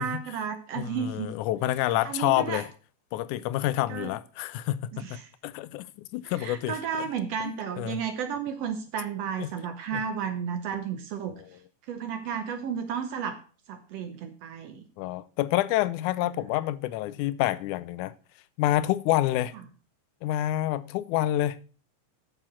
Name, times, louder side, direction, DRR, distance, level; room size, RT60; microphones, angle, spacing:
voice 1, 0.0-1.3 2.0-2.6 3.9-4.1 4.9-5.3 6.4-11.4 11.9-13.4 13.7-14.9 16.3-16.4, right 7 dB, 65° right, 1.7 m, -33 dB
voice 2, 0.8-2.7 3.1-6.8 7.8-8.0 9.4-9.5 9.9-10.0 11.4-11.5 15.0-18.1 18.6-19.5 20.2-21.6, left 14 dB, 85° left, 2.1 m, -28 dB
9.0 x 6.8 x 6.1 m
omnidirectional pair, 3.4 m